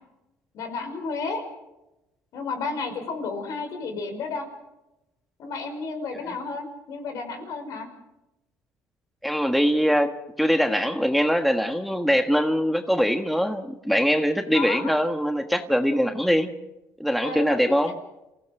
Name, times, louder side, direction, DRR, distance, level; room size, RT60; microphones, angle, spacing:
voice 1, 0.5-1.4 2.3-4.5 5.4-7.9 14.5-14.9 17.2-17.7, left 4 dB, 65° left, 5 dB, 5.5 m, -32 dB
voice 2, 9.2-10.1 10.4-16.5 17.0-18.0, equal, ahead, 6 dB, 1.4 m, -22 dB
28.5 x 16.5 x 6.7 m, 0.96 s
cardioid pair, 120°, 6 cm